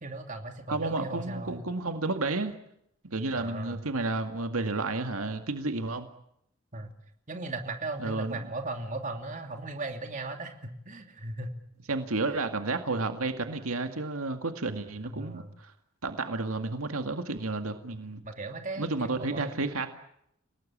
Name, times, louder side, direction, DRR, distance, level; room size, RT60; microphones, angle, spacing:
voice 1, 0.0-1.6 3.3-3.8 6.7-6.9 7.3-11.5 15.0-15.5 18.2-19.7, right 2 dB, 35° right, 5 dB, 2.9 m, -37 dB
voice 2, 0.7-2.5 3.0-6.1 8.0-8.5 11.9-15.7 16.0-18.2 18.8-19.9, right 3 dB, 80° right, 7 dB, 2.1 m, -31 dB
30.0 x 18.5 x 8.7 m, 0.75 s
head